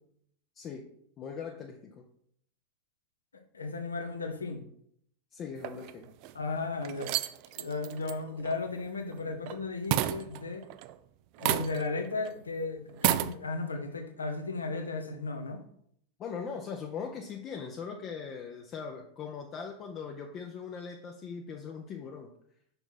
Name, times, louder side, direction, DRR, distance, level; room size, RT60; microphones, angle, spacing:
voice 1, 0.6-0.9 1.2-2.0 5.3-6.1 16.2-22.3, left 6 dB, 30° left, 2 dB, 0.7 m, -40 dB
voice 2, 3.5-4.6 6.3-7.1 7.6-10.7 11.4-15.6, left 3 dB, 75° left, 6 dB, 1.0 m, -35 dB
sound 1, 5.6-6.3 6.8-9.6 9.9-11.0 11.4-12.0 12.3-12.4 12.9-13.3, right 14 dB, 45° right, 0.3 m, -31 dB
5.9 x 5.3 x 4.3 m, 0.68 s
figure-of-eight pair, 90°, 0 cm